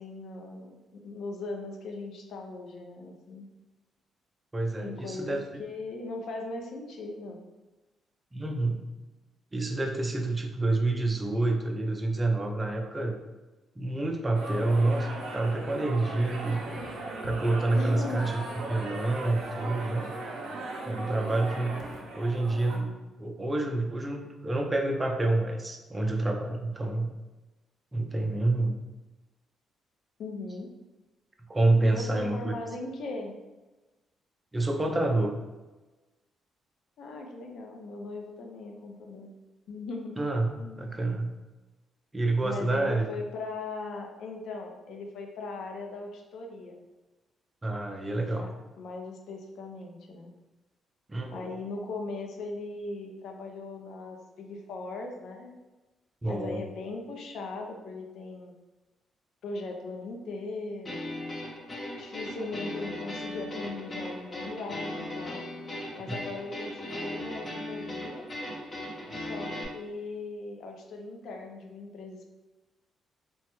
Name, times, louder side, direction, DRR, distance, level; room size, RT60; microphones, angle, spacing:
voice 1, 0.0-3.5 4.8-7.4 17.7-18.3 30.2-30.7 31.8-33.4 37.0-39.3 39.7-40.1 40.6-40.9 42.4-46.8 48.4-48.5 48.8-50.3 51.3-55.6 56.3-58.6 59.4-61.0 62.0-65.4 65.9-68.3 69.1-72.3, left 3 dB, 70° left, 2 dB, 0.5 m, -39 dB
voice 2, 4.5-5.4 8.3-8.9 9.5-13.2 13.8-17.0 17.2-18.4 18.7-20.1 20.9-21.9 22.1-22.9 23.2-27.1 27.9-28.8 31.5-32.5 34.5-35.4 40.2-40.5 40.8-41.3 42.1-43.1 47.6-48.5 51.1-51.5 56.2-56.6, right 2 dB, 20° right, 2 dB, 0.5 m, -28 dB
sound 1, 14.3-22.8, right 2 dB, 75° right, 0.6 m, -38 dB
sound 2, 60.8-69.6, left 1 dB, 35° left, 0.8 m, -38 dB
3.4 x 2.0 x 3.0 m, 1.1 s
cardioid pair, 90°, 0 cm